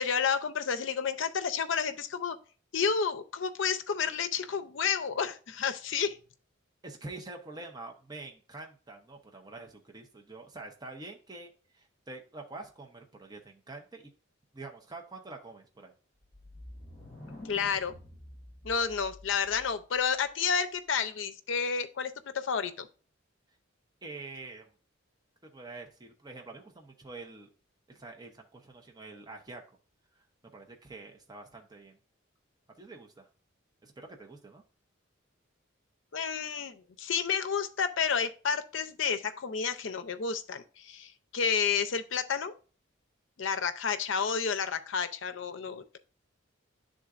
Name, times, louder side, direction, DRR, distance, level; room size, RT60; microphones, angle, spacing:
voice 1, 0.0-2.4 2.7-6.2 17.4-17.9 18.6-22.9 36.1-42.5 43.4-46.0, left 6 dB, 65° left, 11 dB, 0.5 m, -30 dB
voice 2, 6.8-14.1 14.5-15.9 24.0-24.7 25.5-27.5 27.9-29.6 30.5-32.0 32.8-33.3 33.8-34.6, right 3 dB, 20° right, 2 dB, 0.7 m, -46 dB
sound 1, 16.2-20.0, left 1 dB, 20° left, 1.8 m, -49 dB
10.5 x 3.8 x 2.4 m, 0.37 s
head